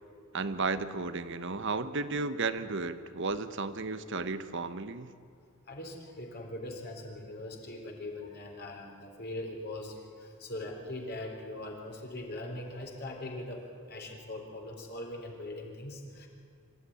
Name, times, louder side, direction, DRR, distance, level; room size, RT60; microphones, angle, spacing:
voice 1, 0.3-5.1, right 3 dB, 60° right, 12 dB, 1.1 m, -33 dB
voice 2, 5.7-13.6 13.9-16.3, left 1 dB, 50° left, 0 dB, 3.8 m, -41 dB
26.0 x 14.5 x 10.0 m, 2.4 s
head